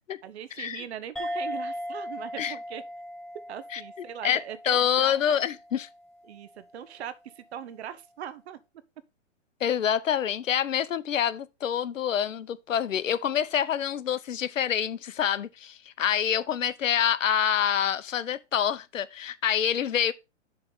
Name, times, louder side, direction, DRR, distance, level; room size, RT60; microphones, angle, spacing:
voice 1, 0.2-2.8 3.5-5.2 6.3-8.6, right 10 dB, 60° right, 0.9 m, -40 dB
sound 1, 1.2-6.1, equal, ahead, 0.6 m, -38 dB
voice 2, 4.2-5.9 9.6-20.1, left 9 dB, 90° left, 0.8 m, -26 dB
7.0 x 3.3 x 5.4 m
hypercardioid pair, 140°, 37 cm